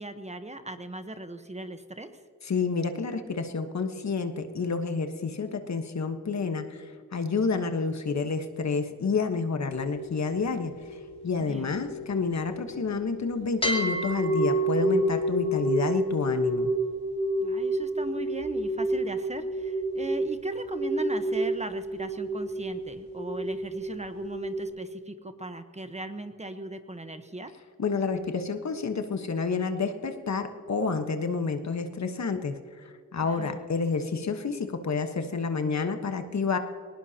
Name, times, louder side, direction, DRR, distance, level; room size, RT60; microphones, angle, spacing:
voice 1, 0.0-2.1 11.5-11.7 17.4-27.5 33.2-33.6, right 2 dB, 20° right, 8 dB, 1.1 m, -38 dB
voice 2, 2.4-16.7 27.8-36.6, left 4 dB, 55° left, 7 dB, 1.3 m, -29 dB
sound 1, 9.7-13.1 13.6-24.7, right 1 dB, 15° left, 3.4 m, -30 dB
19.5 x 19.5 x 2.9 m, 2.2 s
cardioid pair, 70°, 33 cm